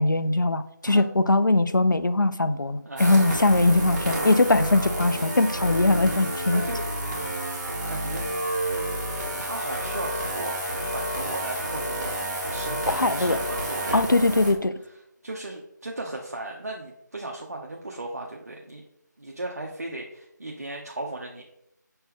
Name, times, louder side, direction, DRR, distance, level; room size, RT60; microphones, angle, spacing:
voice 1, 0.0-6.6 12.9-13.4 13.9-14.8, left 2 dB, 80° left, 12 dB, 0.5 m, -21 dB
voice 2, 2.8-3.5 6.5-7.3 7.9-8.3 9.4-12.2 12.5-14.2 15.2-18.8 19.2-21.4, right 2 dB, 50° right, 0 dB, 0.7 m, -36 dB
sound 1, 3.0-14.5, right 1 dB, 10° right, 1.6 m, -30 dB
6.7 x 4.3 x 3.6 m, 0.80 s
figure-of-eight pair, 165°, 10 cm